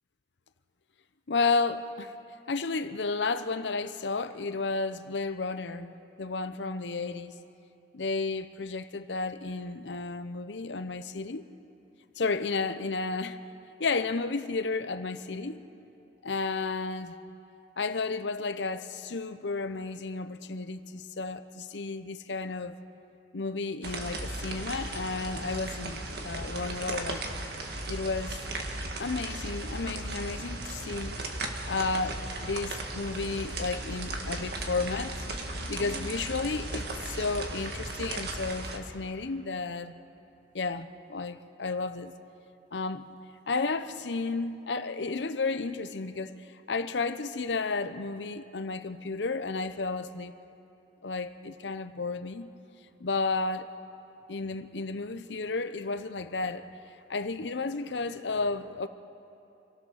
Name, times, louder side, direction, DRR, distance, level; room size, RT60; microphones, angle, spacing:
voice 1, 1.3-2.1 2.5-7.3 7.9-11.5 12.2-13.4 13.8-15.6 16.2-17.2 17.8-22.7 23.3-27.2 27.9-28.4 29.0-31.2 31.7-39.9 40.5-42.1 42.7-43.0 43.5-50.3 51.0-52.5 53.0-53.7 54.3-56.6 57.1-58.9, left 3 dB, 85° left, 0.8 m, -32 dB
sound 1, 23.8-38.8, right 2 dB, 65° right, 1.8 m, -36 dB
27.0 x 16.0 x 6.5 m
head